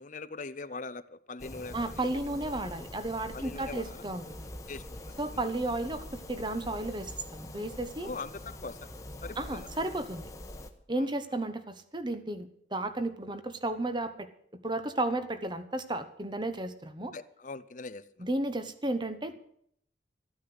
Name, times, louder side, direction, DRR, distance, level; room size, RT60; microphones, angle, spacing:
voice 1, 0.0-2.1 3.3-4.1 4.7-5.2 8.0-8.9 9.2-9.7 11.0-11.1 17.1-18.3, left 3 dB, 45° left, 15 dB, 0.6 m, -42 dB
sound 1, 1.4-10.7, left 1 dB, 20° left, 1.1 m, -44 dB
voice 2, 1.7-4.5 5.2-8.1 9.4-10.3 10.9-14.3 14.6-17.1 18.2-19.4, right 2 dB, 25° right, 11 dB, 1.1 m, -33 dB
14.0 x 9.4 x 8.0 m, 0.67 s
head